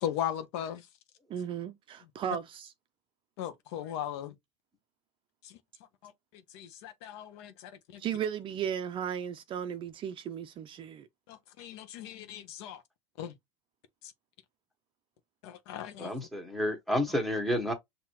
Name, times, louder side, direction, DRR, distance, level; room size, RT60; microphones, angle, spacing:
voice 1, 0.0-0.9 3.4-4.3 5.4-5.6 6.0-6.1 6.5-8.0 11.3-12.8 13.2-13.3 15.4-16.1, left 10 dB, 65° left, 1.0 m, -38 dB
voice 2, 1.3-2.7 8.0-11.1, right 8 dB, 35° right, 0.5 m, -35 dB
voice 3, 16.0-17.7, equal, ahead, 1.5 m, -30 dB
5.7 x 2.8 x 3.0 m
supercardioid pair, 115°, 15 cm